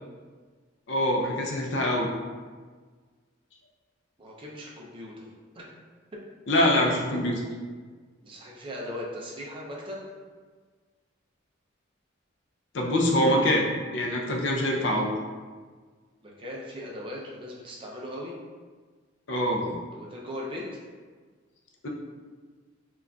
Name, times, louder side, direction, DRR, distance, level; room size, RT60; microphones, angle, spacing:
voice 1, 0.9-2.1 6.5-7.4 12.7-13.7 13.9-15.1 19.3-19.8 21.8-21.9, left 1 dB, 60° left, -1 dB, 0.4 m, -24 dB
voice 2, 4.2-5.3 5.5-5.7 8.2-10.1 16.2-18.3 19.9-20.8, left 1 dB, 25° right, -3 dB, 0.4 m, -38 dB
3.8 x 2.3 x 2.2 m, 1.5 s
head